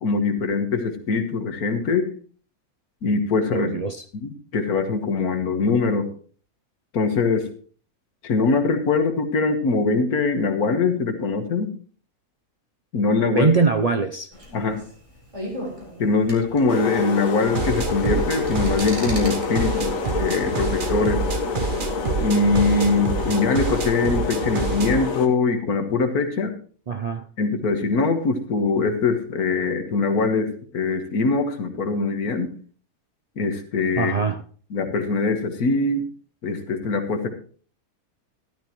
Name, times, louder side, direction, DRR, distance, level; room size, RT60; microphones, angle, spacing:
voice 1, 0.0-2.1 3.0-3.7 4.1-6.1 6.9-7.5 8.2-11.7 12.9-13.5 14.5-14.8 16.0-21.2 22.2-26.5 27.4-32.5 33.4-34.1 34.7-36.0 36.4-37.3, left 4 dB, 90° left, 6 dB, 1.9 m, -22 dB
voice 2, 3.5-4.0 13.3-14.3 26.9-27.3 34.0-34.4, right 4 dB, 70° right, 7 dB, 0.3 m, -22 dB
sound 1, 14.3-20.4, equal, 20° right, 4.0 m, -37 dB
sound 2, 16.7-25.3, left 4 dB, 65° left, 1.7 m, -27 dB
sound 3, 17.4-25.0, right 5 dB, 45° right, 0.8 m, -28 dB
13.5 x 12.5 x 3.0 m, 0.43 s
omnidirectional pair, 1.5 m